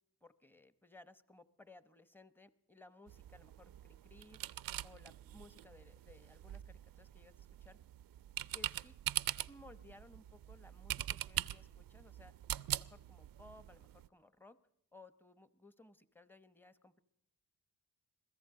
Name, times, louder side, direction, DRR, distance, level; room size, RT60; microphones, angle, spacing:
voice 1, 0.2-4.4 4.8-7.8 8.5-9.0 9.5-12.3 12.7-14.6 14.9-17.0, left 2 dB, 5° left, 12 dB, 0.9 m, -60 dB
sound 1, 3.1-14.1, right 13 dB, 70° right, 0.5 m, -43 dB
22.5 x 15.0 x 3.8 m, 0.84 s
supercardioid pair, 45°, 37 cm